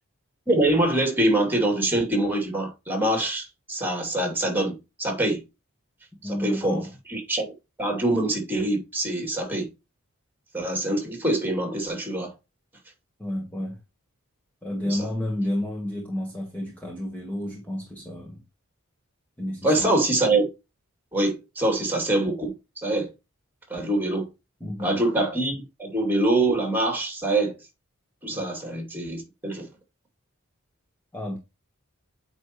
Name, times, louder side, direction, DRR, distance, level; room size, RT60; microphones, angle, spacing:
voice 1, 0.5-5.4 6.2-7.5 7.8-9.7 10.5-12.3 14.8-15.1 19.6-20.4 21.1-23.1 23.7-24.3 24.8-27.6 28.2-29.7, right 1 dB, 10° right, 2.6 m, -24 dB
voice 2, 6.2-6.9 13.2-13.8 14.6-18.4 19.4-19.9 24.6-25.0 28.3-28.4 31.1-31.4, left 1 dB, 10° left, 1.3 m, -31 dB
8.6 x 4.4 x 3.0 m
head